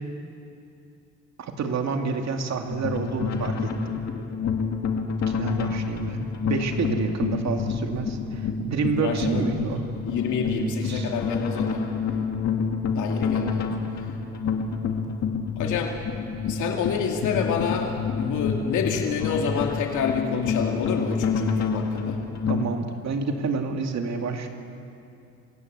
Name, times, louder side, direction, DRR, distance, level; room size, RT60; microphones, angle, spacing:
voice 1, 1.4-4.0 5.3-9.8 10.8-11.1 22.5-24.5, right 5 dB, 60° right, 4 dB, 2.5 m, -29 dB
sound 1, 2.7-22.7, left 5 dB, 60° left, 2.1 m, -28 dB
voice 2, 9.0-9.8 10.1-11.8 12.9-13.7 15.6-15.9 16.5-17.9 18.2-22.2, left 6 dB, 80° left, 1 dB, 2.5 m, -27 dB
26.5 x 17.0 x 8.1 m, 2.7 s
cardioid pair, 90°, 30 cm